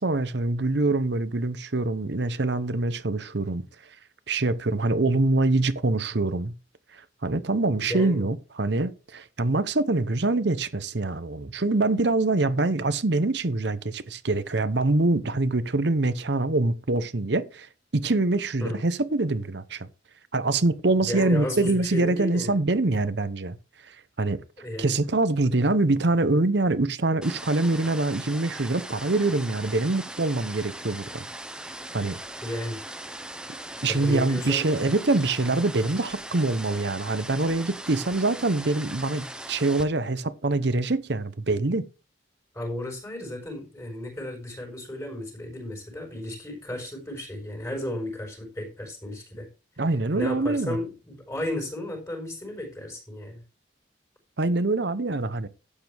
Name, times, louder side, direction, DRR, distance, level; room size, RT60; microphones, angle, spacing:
voice 1, 0.0-3.6 4.3-6.5 7.2-19.9 20.3-23.6 24.2-24.4 24.8-31.3 31.9-32.2 33.8-41.8 49.8-50.8 54.4-55.5, right 2 dB, 60° right, 0.8 m, -24 dB
voice 2, 7.7-8.2 18.6-18.8 21.0-22.6 24.6-25.0 32.4-32.8 33.9-34.7 42.5-49.5 50.1-53.4, left 1 dB, 15° left, 4.7 m, -34 dB
sound 1, 27.2-39.8, right 1 dB, 5° right, 0.7 m, -39 dB
12.0 x 8.7 x 3.5 m
head